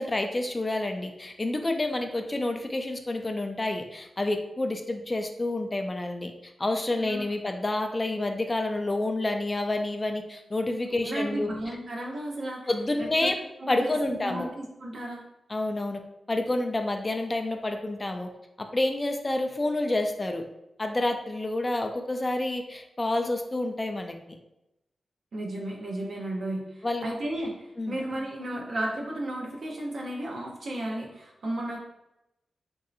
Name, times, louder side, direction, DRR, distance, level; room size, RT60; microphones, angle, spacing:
voice 1, 0.0-6.3 6.6-11.5 12.7-13.4 13.7-14.5 15.5-16.0 16.3-18.3 18.6-20.4 20.8-24.4 26.8-27.1 27.8-28.0, left 2 dB, 25° left, 5 dB, 0.3 m, -29 dB
voice 2, 10.9-12.6 13.0-13.3 13.6-15.2 25.3-31.8, right 1 dB, 70° right, -2 dB, 0.7 m, -34 dB
3.0 x 2.7 x 2.5 m, 0.88 s
cardioid pair, 70°, 0 cm